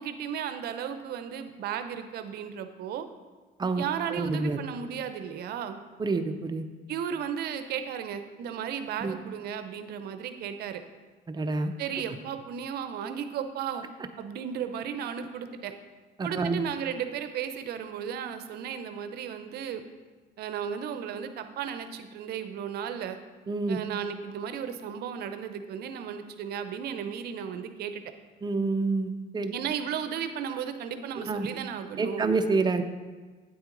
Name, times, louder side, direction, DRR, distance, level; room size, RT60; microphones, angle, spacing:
voice 1, 0.0-3.1 3.8-5.8 6.9-10.8 11.8-13.8 14.2-15.7 16.2-19.8 20.4-23.2 23.7-28.0 29.5-32.3, right 8 dB, 70° right, 9 dB, 0.7 m, -34 dB
voice 2, 4.1-4.6 6.0-6.7 9.0-9.2 11.3-11.7 16.2-16.6 23.5-23.8 28.4-29.5 31.3-31.5 32.0-32.8, right 3 dB, 25° right, 7 dB, 0.6 m, -27 dB
9.1 x 7.8 x 3.9 m, 1.4 s
cardioid pair, 110°, 17 cm